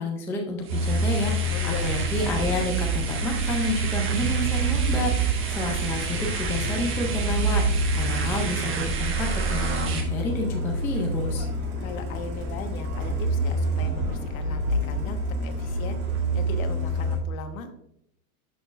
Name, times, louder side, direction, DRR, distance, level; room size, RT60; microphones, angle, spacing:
voice 1, 0.0-11.4, left 3 dB, 5° left, 1 dB, 0.3 m, -30 dB
sound 1, 0.6-10.0, right 5 dB, 25° right, 1.2 m, -29 dB
Truck, 0.7-17.2, right 1 dB, 85° right, 2.5 m, -28 dB
voice 2, 1.5-2.0 11.8-17.7, left 4 dB, 65° left, 7 dB, 1.3 m, -38 dB
11.5 x 6.0 x 2.4 m, 0.75 s
supercardioid pair, 145°, 44 cm